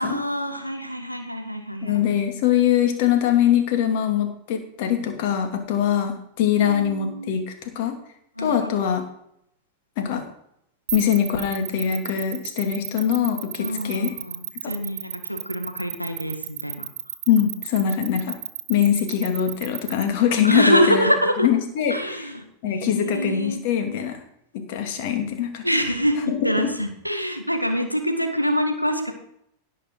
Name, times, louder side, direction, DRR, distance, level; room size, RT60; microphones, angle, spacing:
voice 1, 0.0-2.0 6.4-7.4 8.4-9.0 13.6-16.9 20.4-21.5 21.9-23.6 25.6-29.1, equal, 90° left, 6 dB, 1.8 m, -25 dB
voice 2, 1.8-8.0 8.4-9.0 10.0-10.2 10.9-14.1 17.3-18.4 18.7-21.1 21.4-22.0 22.6-24.2 24.5-25.6, left 9 dB, 50° left, 5 dB, 2.6 m, -22 dB
sound 1, 10.9-20.0, right 11 dB, 60° right, 1.1 m, -32 dB
17.5 x 6.4 x 4.7 m, 0.73 s
figure-of-eight pair, 90°, 0 cm